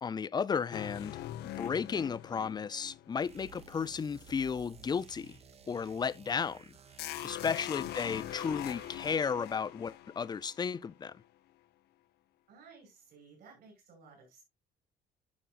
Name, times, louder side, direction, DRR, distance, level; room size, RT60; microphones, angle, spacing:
voice 1, 0.0-1.3 1.6-5.4 5.7-6.8 7.2-11.2, left 6 dB, 25° left, 0.4 m, -34 dB
sound 1, 0.7-4.1 7.0-11.1, left 13 dB, 75° left, 0.7 m, -42 dB
sound 2, 3.2-9.4, right 6 dB, 35° right, 0.9 m, -56 dB
voice 2, 7.6-8.1 12.5-14.4, right 4 dB, 70° right, 5.9 m, -56 dB
11.5 x 6.1 x 2.4 m
cardioid pair, 110°, 17 cm